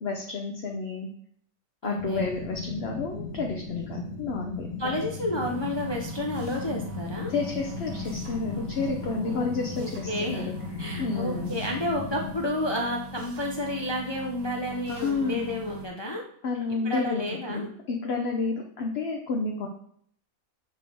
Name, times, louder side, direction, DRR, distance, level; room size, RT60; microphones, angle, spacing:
voice 1, 0.0-1.1 1.8-4.7 7.3-10.5 11.0-11.6 14.9-15.4 16.4-17.2 17.5-19.7, left 4 dB, 55° left, 1 dB, 0.9 m, -30 dB
voice 2, 1.8-2.3 4.8-7.3 9.2-9.5 9.8-10.5 10.8-16.2 16.7-17.7, left 1 dB, 25° left, -1 dB, 0.6 m, -31 dB
sound 1, 2.0-12.3, left 3 dB, 75° left, 2.2 m, -37 dB
sound 2, 5.4-15.9, right 3 dB, 80° right, 1.5 m, -42 dB
7.6 x 3.8 x 3.3 m, 0.63 s
omnidirectional pair, 1.4 m